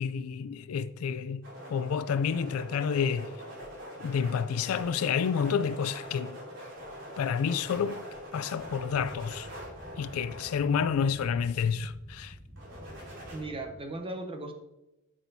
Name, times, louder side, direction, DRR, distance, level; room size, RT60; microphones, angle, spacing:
voice 1, 0.0-1.4 1.7-3.3 4.0-6.4 7.2-8.0 8.3-9.5 10.0-12.3, left 6 dB, 80° left, 0.3 m, -29 dB
sound 1, 1.4-11.3 12.6-13.4, equal, 60° right, 2.8 m, -44 dB
sound 2, 8.6-13.8, right 1 dB, 10° left, 1.1 m, -50 dB
voice 2, 13.3-14.5, right 2 dB, 25° right, 0.9 m, -37 dB
11.5 x 6.2 x 2.7 m
head